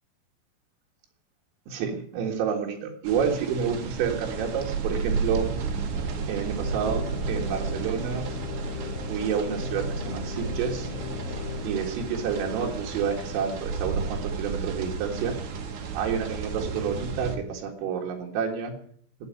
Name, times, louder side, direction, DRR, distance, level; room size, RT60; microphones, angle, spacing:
voice 1, 1.7-5.5 6.3-8.3 9.1-10.9 11.6-15.3 15.9-18.7, right 7 dB, 80° right, 1 dB, 4.5 m, -29 dB
sound 1, 3.0-17.4, right 5 dB, 65° right, 2.1 m, -32 dB
sound 2, 6.6-11.7, left 6 dB, 70° left, 2.6 m, -37 dB
12.0 x 9.8 x 9.4 m, 0.62 s
omnidirectional pair, 5.9 m